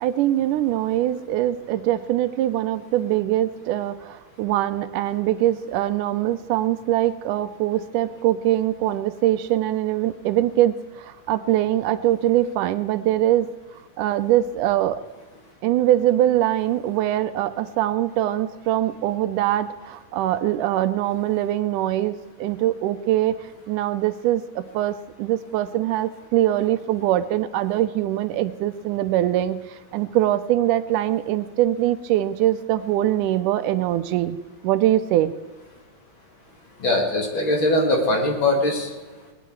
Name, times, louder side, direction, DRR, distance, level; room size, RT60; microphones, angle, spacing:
voice 1, 0.0-13.5 14.0-15.0 15.6-23.4 23.7-34.4 34.6-35.3, right 13 dB, 80° right, 12 dB, 2.1 m, -22 dB
voice 2, 36.8-38.9, left 1 dB, 40° left, 0 dB, 2.5 m, -21 dB
19.5 x 10.0 x 4.6 m, 1.3 s
omnidirectional pair, 3.7 m